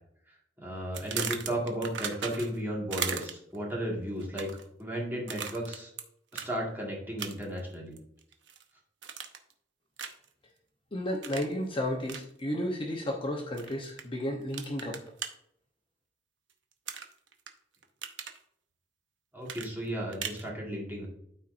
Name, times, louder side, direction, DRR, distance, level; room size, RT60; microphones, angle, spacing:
voice 1, 0.6-4.5 4.8-5.9 6.3-8.0 19.3-21.1, equal, 10° right, -3 dB, 1.9 m, -34 dB
sound 1, 0.9-2.6 2.9-3.6 4.2-4.7 5.3-6.0 6.3-6.5 7.2-7.6 8.0-8.6 9.0-9.5 10.0-10.3 11.2-11.5 12.1-12.2 13.6-14.0 14.5-15.3 16.9-17.5 17.8-18.4 19.5-20.4, right 7 dB, 80° right, 0.8 m, -37 dB
voice 2, 10.9-15.0, left 1 dB, 30° left, 0 dB, 1.0 m, -33 dB
12.5 x 4.3 x 2.6 m, 0.74 s
head